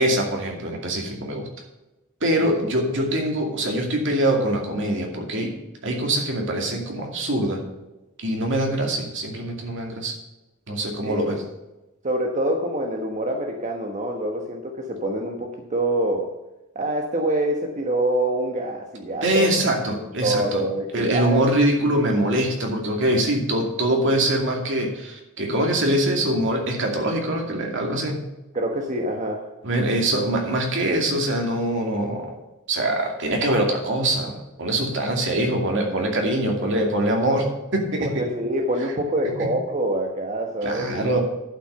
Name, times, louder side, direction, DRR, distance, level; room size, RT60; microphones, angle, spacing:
voice 1, 0.0-1.5 2.2-5.5 5.8-7.6 8.2-10.1 10.7-11.4 19.2-20.6 20.9-28.2 29.6-32.3 32.7-38.2 40.6-41.2, right 1 dB, 60° right, 2 dB, 2.5 m, -23 dB
voice 2, 11.0-11.3 12.0-16.3 16.7-19.5 19.9-21.4 28.5-29.4 38.0-41.2, right 1 dB, 35° right, 2 dB, 1.2 m, -26 dB
11.5 x 6.0 x 6.8 m, 1.0 s
head